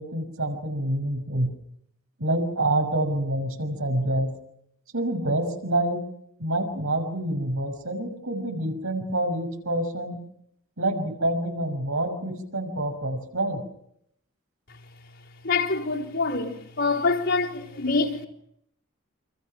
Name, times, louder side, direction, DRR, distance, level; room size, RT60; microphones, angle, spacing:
voice 1, 0.0-1.5 2.2-4.3 4.9-6.0 6.4-10.2 10.8-13.6, right 1 dB, 90° right, 6.4 m, -27 dB
voice 2, 15.4-18.3, left 3 dB, 65° left, 4.1 m, -25 dB
29.0 x 27.0 x 6.1 m
head